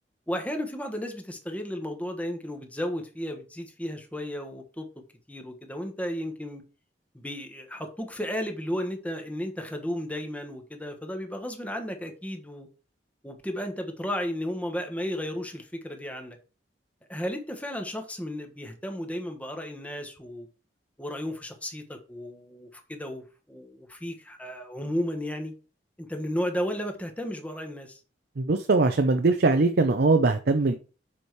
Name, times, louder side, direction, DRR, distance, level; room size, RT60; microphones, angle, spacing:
voice 1, 0.3-4.9 5.3-6.6 7.1-12.7 13.2-16.4 17.1-20.5 21.0-25.5 26.0-28.0 30.6-30.7, equal, 10° left, 1.2 m, -34 dB
voice 2, 28.4-30.7, right 3 dB, 60° right, 0.6 m, -21 dB
7.1 x 5.0 x 4.6 m
head